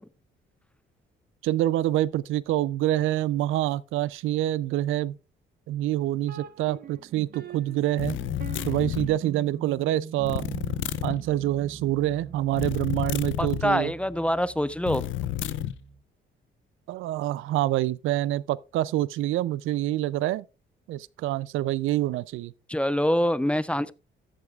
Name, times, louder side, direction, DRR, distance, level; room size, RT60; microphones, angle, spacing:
voice 1, 1.4-5.2 5.7-8.2 8.6-10.4 11.0-13.9 16.9-20.4 20.9-22.5, right 14 dB, 85° right, 0.5 m, -26 dB
sound 1, 6.2-16.0, right 7 dB, 50° right, 1.2 m, -42 dB
sound 2, 8.0-9.1 10.3-11.2 12.5-13.7 14.8-15.7, left 13 dB, 75° left, 0.6 m, -30 dB
voice 2, 13.4-15.0 22.7-23.9, equal, 5° left, 0.5 m, -25 dB
14.0 x 8.1 x 2.4 m
cardioid pair, 90°, 20 cm